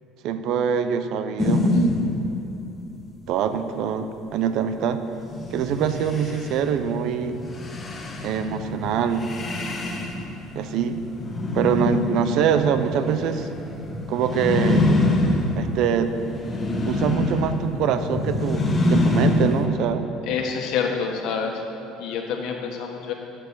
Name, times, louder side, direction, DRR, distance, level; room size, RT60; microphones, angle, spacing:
voice 1, 0.2-1.8 3.3-5.0 5.5-7.4 8.2-9.3 10.5-11.0 11.5-13.5 14.1-14.9 15.6-16.1 16.8-20.1, right 7 dB, 65° right, 10 dB, 0.6 m, -24 dB
sound 1, 1.4-2.7 5.3-19.7, left 2 dB, 20° left, 1.2 m, -25 dB
voice 2, 20.2-21.6 22.0-23.1, left 6 dB, 65° left, 2 dB, 1.4 m, -27 dB
8.4 x 6.6 x 8.3 m, 2.9 s
cardioid pair, 130°, 0 cm